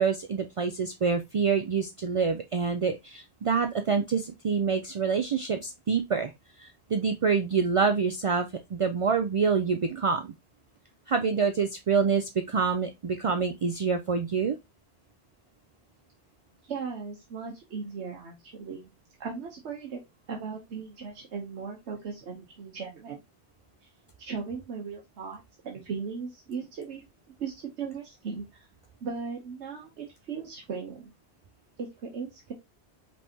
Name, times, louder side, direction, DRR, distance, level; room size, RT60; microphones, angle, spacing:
voice 1, 0.0-6.3 6.6-10.3 11.1-14.6, right 5 dB, 60° right, 6 dB, 0.3 m, -26 dB
voice 2, 16.6-18.9 19.2-20.0 20.3-23.2 24.2-27.0 27.4-28.7 29.0-31.1 31.8-32.5, right 5 dB, 80° right, 1 dB, 1.2 m, -37 dB
5.3 x 3.3 x 2.8 m, 0.21 s
omnidirectional pair, 1.1 m